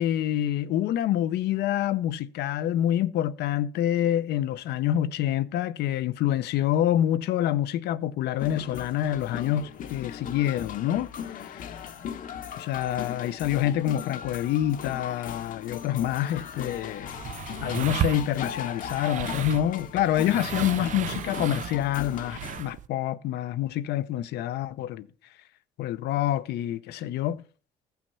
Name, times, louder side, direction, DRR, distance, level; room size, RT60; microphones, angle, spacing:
voice 1, 0.0-11.7 12.6-17.2 17.6-25.1 25.8-27.4, left 12 dB, 75° left, 0.7 m, -27 dB
sound 1, 8.4-22.6, left 8 dB, 55° left, 0.9 m, -38 dB
sound 2, 16.5-22.9, right 11 dB, 50° right, 0.4 m, -35 dB
14.5 x 5.9 x 5.5 m
cardioid pair, 110°, 17 cm